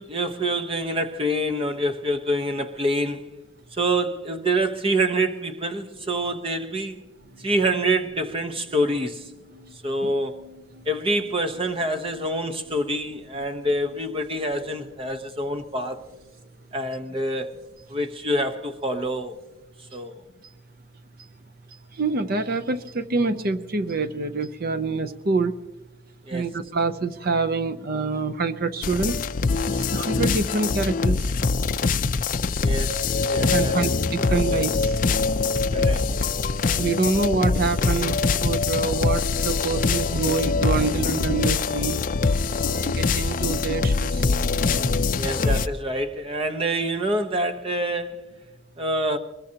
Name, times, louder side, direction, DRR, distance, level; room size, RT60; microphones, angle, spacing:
voice 1, 0.0-3.3 3.7-7.0 7.4-9.3 9.8-10.4 10.8-16.0 16.7-17.5 17.9-19.4 19.9-20.2 26.3-26.5 32.6-33.9 34.2-34.3 35.7-36.1 45.2-48.2 48.8-49.2, right 1 dB, 25° right, 1.0 m, -26 dB
sound 1, 7.2-19.6, left 2 dB, 90° right, 2.6 m, -53 dB
voice 2, 22.0-25.5 26.3-29.2 29.7-31.2 33.5-34.9 36.8-42.0 42.6-44.3, right 4 dB, 45° right, 0.6 m, -26 dB
sound 2, 28.8-45.7, left 4 dB, 40° left, 0.5 m, -23 dB
23.0 x 21.0 x 2.9 m
head